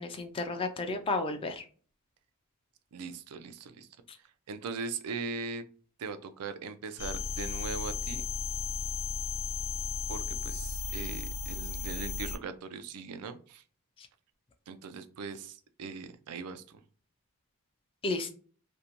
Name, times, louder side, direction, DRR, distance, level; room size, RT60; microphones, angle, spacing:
voice 1, 0.0-1.6 18.0-18.3, left 3 dB, 25° left, 7 dB, 0.3 m, -32 dB
voice 2, 2.9-3.9 4.5-5.6 6.0-8.2 10.1-13.6 14.7-16.8, right 5 dB, 85° right, 10 dB, 0.4 m, -40 dB
sound 1, 7.0-12.4, left 5 dB, 85° left, 0.5 m, -35 dB
2.6 x 2.1 x 2.8 m, 0.42 s
head